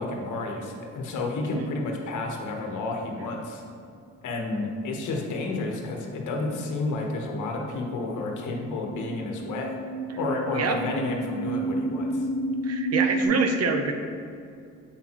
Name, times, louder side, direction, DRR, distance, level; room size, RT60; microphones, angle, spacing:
voice 1, 0.0-3.6 4.2-9.7 10.2-12.3, left 2 dB, 75° left, 1 dB, 1.1 m, -31 dB
sound 1, 6.0-13.3, right 2 dB, 10° right, 1.0 m, -32 dB
voice 2, 12.6-13.9, right 4 dB, 55° right, 5 dB, 0.8 m, -26 dB
8.3 x 5.8 x 3.0 m, 2.5 s
cardioid pair, 90°, 30 cm